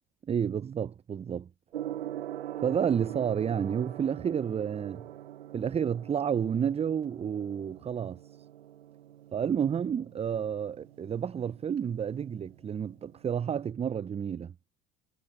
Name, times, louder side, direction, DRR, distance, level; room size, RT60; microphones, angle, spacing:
voice 1, 0.3-1.5 2.6-5.0 5.5-8.2 9.3-14.5, right 8 dB, 20° right, 0.5 m, -30 dB
Gong, 1.7-13.7, right 12 dB, 80° right, 2.4 m, -44 dB
hypercardioid pair, 65°, 31 cm